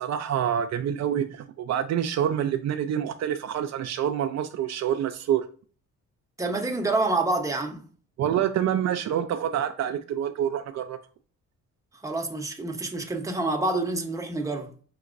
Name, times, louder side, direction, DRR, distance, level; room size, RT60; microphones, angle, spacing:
voice 1, 0.0-5.5 8.2-11.0, right 9 dB, 60° right, 0.4 m, -27 dB
voice 2, 6.4-7.8 12.0-14.7, right 2 dB, 10° right, 0.8 m, -27 dB
5.9 x 2.8 x 2.5 m
cardioid pair, 90°, 30 cm